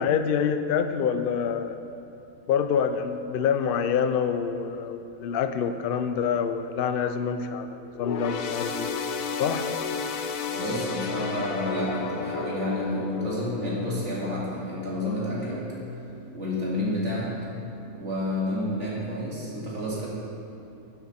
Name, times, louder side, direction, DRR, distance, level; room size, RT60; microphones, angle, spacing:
voice 1, 0.0-1.8 2.5-9.0 9.4-9.7, left 7 dB, 90° left, 9 dB, 0.5 m, -26 dB
sound 1, 7.9-15.6 16.0-16.2 17.1-17.2, left 5 dB, 70° left, 1.0 m, -33 dB
voice 2, 10.5-15.8 16.3-17.4 17.9-20.1, left 1 dB, 50° right, -6 dB, 2.5 m, -30 dB
11.0 x 7.4 x 4.2 m, 2.8 s
omnidirectional pair, 1.6 m